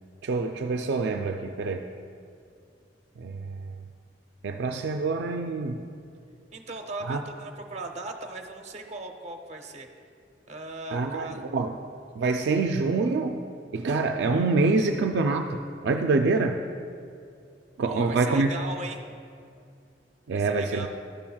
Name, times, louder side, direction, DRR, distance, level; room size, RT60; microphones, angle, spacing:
voice 1, 0.2-1.9 3.2-3.6 4.4-5.8 7.0-7.2 10.9-11.7 12.2-13.4 13.7-15.6 15.8-16.6 17.8-18.5 20.3-20.9, right 3 dB, 70° right, 4 dB, 0.3 m, -26 dB
voice 2, 6.5-9.9 10.5-11.4 17.9-19.0 20.3-20.9, right 2 dB, 40° right, 4 dB, 0.7 m, -38 dB
12.5 x 7.2 x 2.3 m, 2.3 s
head